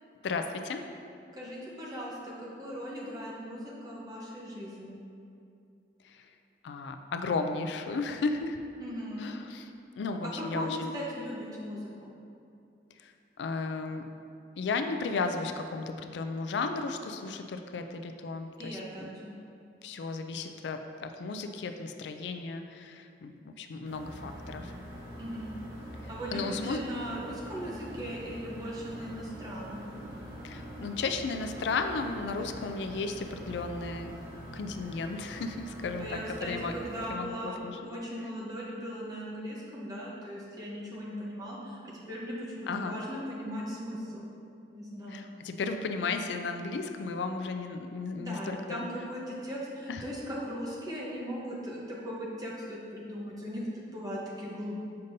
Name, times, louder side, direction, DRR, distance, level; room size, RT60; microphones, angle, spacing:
voice 1, 0.2-0.8 6.0-6.3 6.6-8.6 9.2-9.7 10.0-10.9 13.0-13.1 13.4-14.0 14.6-19.1 19.8-24.7 26.3-26.8 30.4-34.1 34.5-36.7 37.1-37.8 42.7-43.0 45.1-48.9 49.3-49.4 49.9-50.1, left 4 dB, 80° left, 7 dB, 0.4 m, -34 dB
voice 2, 1.3-5.0 8.8-9.3 10.2-12.1 18.6-19.3 25.2-25.6 26.1-29.9 36.0-44.3 44.7-45.3 48.1-54.8, equal, 20° right, -5 dB, 1.0 m, -38 dB
sound 1, 23.8-37.1, equal, 80° right, 1.2 m, -44 dB
6.6 x 5.2 x 2.7 m, 2.5 s
head